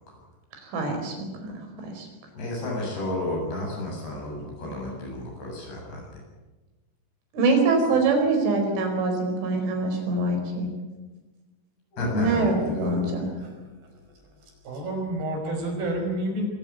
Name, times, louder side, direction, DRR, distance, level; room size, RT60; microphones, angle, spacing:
voice 1, 0.6-2.1 7.3-10.7 12.1-13.3, right 3 dB, 85° right, 4 dB, 7.1 m, -24 dB
voice 2, 2.4-6.2 11.9-13.0, left 1 dB, 65° left, 0 dB, 9.6 m, -32 dB
voice 3, 14.6-16.4, right 1 dB, 60° right, 3 dB, 7.3 m, -29 dB
24.5 x 16.0 x 9.5 m, 1.2 s
omnidirectional pair, 5.4 m